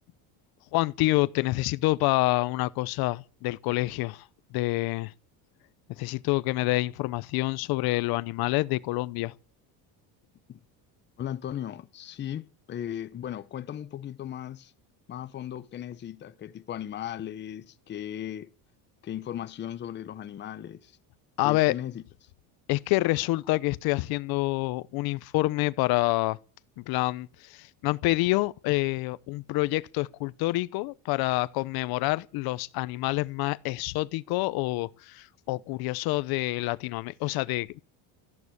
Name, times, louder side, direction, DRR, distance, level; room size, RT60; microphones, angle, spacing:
voice 1, 0.7-4.3 4.5-5.1 6.0-9.3 21.4-21.7 22.7-26.4 26.8-37.8, left 20 dB, 60° left, 0.8 m, -27 dB
voice 2, 11.2-14.7 15.1-18.5 19.0-21.0 21.4-22.0, left 10 dB, 25° left, 0.8 m, -37 dB
14.5 x 11.0 x 8.5 m
cardioid pair, 155°, 42 cm